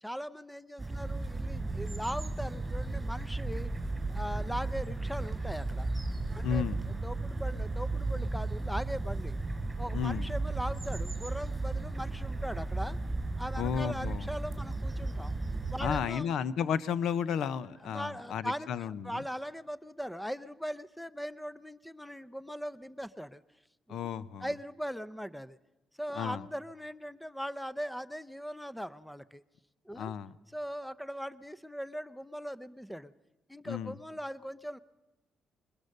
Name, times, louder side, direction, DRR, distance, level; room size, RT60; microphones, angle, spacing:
voice 1, 0.0-3.7 4.1-5.9 6.3-9.4 9.8-13.0 13.4-15.3 15.7-16.3 17.8-23.4 23.9-24.0 24.4-25.6 26.0-29.4 29.9-30.1 30.5-33.1 33.5-34.8, equal, 5° left, 15 dB, 0.7 m, -40 dB
sound 1, 0.8-16.1, right 2 dB, 20° right, 3.7 m, -34 dB
voice 2, 6.4-6.8 9.9-10.3 13.6-14.2 15.8-19.2 23.9-24.4 26.2-26.4 30.0-30.3 33.6-33.9, left 8 dB, 75° left, 17 dB, 0.8 m, -33 dB
22.0 x 21.0 x 6.7 m, 1.0 s
cardioid pair, 90°, 0 cm